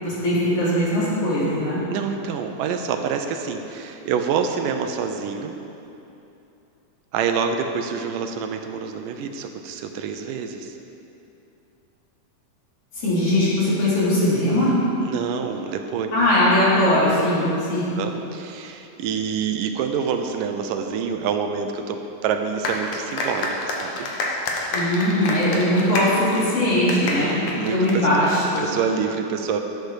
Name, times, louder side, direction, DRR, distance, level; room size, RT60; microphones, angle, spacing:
voice 1, 0.0-1.8 13.0-14.7 16.1-17.9 24.7-27.4 27.7-28.7, left 1 dB, 40° left, -9 dB, 4.3 m, -20 dB
voice 2, 1.9-5.6 7.1-10.7 15.0-16.1 17.5-17.6 18.0-24.1 26.7-28.1 28.6-29.6, right 6 dB, 80° right, 5 dB, 2.3 m, -27 dB
sound 1, 22.6-28.6, left 2 dB, 65° left, 2.4 m, -28 dB
12.0 x 8.6 x 6.4 m, 2.8 s
omnidirectional pair, 4.0 m